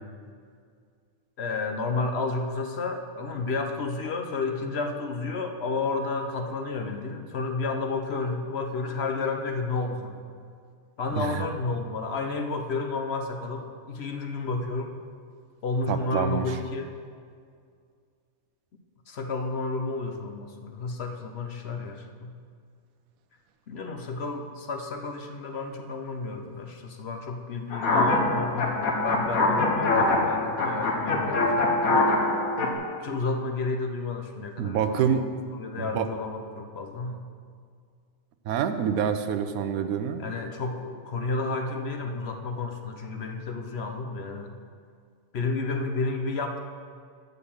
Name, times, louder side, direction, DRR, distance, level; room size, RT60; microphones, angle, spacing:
voice 1, 1.4-10.2 11.0-15.0 15.6-16.9 19.1-22.3 23.7-32.0 33.0-35.3 35.5-37.2 40.2-44.5 45.3-46.6, left 3 dB, 55° left, 4 dB, 0.9 m, -31 dB
voice 2, 15.9-16.6 34.6-35.3 35.9-36.1 38.5-40.3, right 8 dB, 85° right, 9 dB, 1.1 m, -26 dB
sound 1, 27.7-32.7, left 2 dB, 80° left, 1.5 m, -24 dB
8.2 x 6.6 x 7.1 m, 2.2 s
omnidirectional pair, 1.5 m